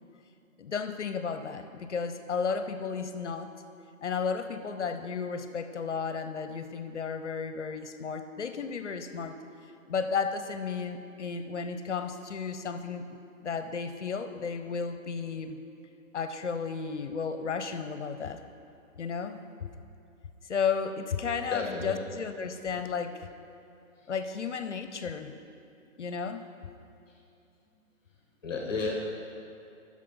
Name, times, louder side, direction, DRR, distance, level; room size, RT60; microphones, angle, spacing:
voice 1, 0.6-3.5 4.0-9.4 9.9-15.6 16.1-18.4 19.0-19.4 20.4-23.3 24.1-25.4 26.0-26.5, left 5 dB, 55° left, 9 dB, 0.6 m, -33 dB
voice 2, 21.5-22.0 24.0-24.1 27.1-27.2 28.4-28.9, left 4 dB, 15° left, -1 dB, 0.9 m, -33 dB
10.0 x 6.5 x 5.5 m, 2.7 s
hypercardioid pair, 170°, 42 cm